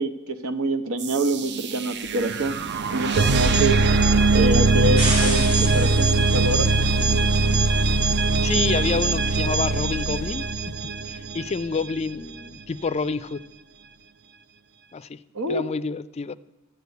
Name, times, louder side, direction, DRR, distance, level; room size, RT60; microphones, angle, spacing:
voice 1, 0.0-2.6 2.9-3.8 4.3-6.7 15.3-15.6, right 2 dB, 80° right, 10 dB, 1.0 m, -26 dB
sound 1, 1.0-11.8, right 3 dB, 55° right, 0.6 m, -21 dB
sound 2, 5.0-10.1, right 1 dB, 30° right, 5.2 m, -34 dB
voice 2, 8.4-10.4 11.1-13.4 14.9-15.2 15.5-16.4, left 4 dB, 30° left, 15 dB, 0.3 m, -28 dB
13.5 x 8.2 x 8.2 m, 1.0 s
head